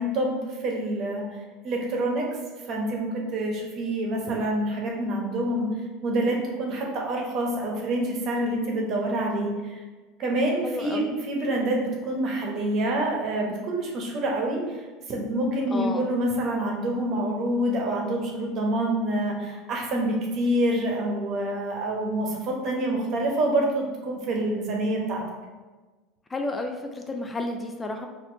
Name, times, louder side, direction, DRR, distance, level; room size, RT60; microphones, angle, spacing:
voice 1, 0.0-2.3 2.7-5.7 6.0-9.8 10.2-25.2, right 1 dB, 50° right, 0 dB, 0.9 m, -27 dB
voice 2, 10.6-11.1 15.7-16.1 26.3-28.1, left 2 dB, 20° left, 4 dB, 0.4 m, -31 dB
4.1 x 2.6 x 2.7 m, 1.3 s
hypercardioid pair, 85°, 0 cm